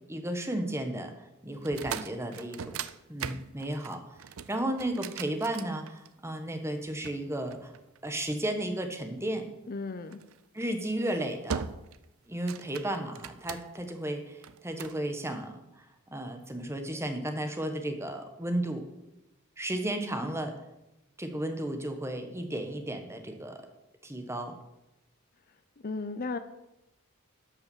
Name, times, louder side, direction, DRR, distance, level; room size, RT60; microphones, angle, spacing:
voice 1, 0.1-2.8 3.1-4.1 4.5-7.7 8.0-9.5 10.5-11.6 12.3-18.8 19.6-20.6 21.2-23.6 24.0-24.5, right 1 dB, 10° right, 6 dB, 1.2 m, -34 dB
sound 1, 1.6-6.3 7.0-8.3 10.1-10.4 10.9-11.1 11.5-12.0 12.3-13.9 14.4-15.0, right 7 dB, 65° right, 0.5 m, -39 dB
voice 2, 9.7-10.2 25.8-26.4, left 3 dB, 40° left, 11 dB, 0.6 m, -34 dB
12.0 x 5.7 x 7.1 m, 0.92 s
head